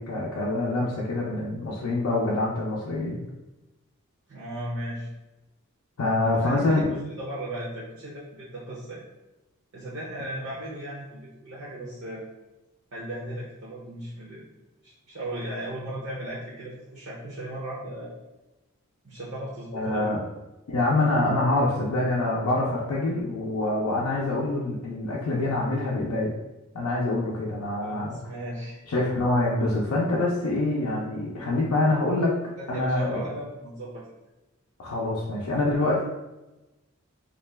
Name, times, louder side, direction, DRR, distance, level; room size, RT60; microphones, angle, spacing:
voice 1, 0.0-3.2 6.0-6.8 19.7-20.2 20.7-26.3 26.7-28.2 28.9-32.4 32.7-33.2 34.8-36.0, left 2 dB, 80° left, -5 dB, 0.5 m, -25 dB
voice 2, 4.3-5.1 6.3-9.0 9.7-12.2 12.9-14.4 14.8-18.2 19.0-20.1 27.8-28.8 32.6-34.1, right 1 dB, 55° right, -5 dB, 0.6 m, -36 dB
2.4 x 2.2 x 3.1 m, 1.0 s
head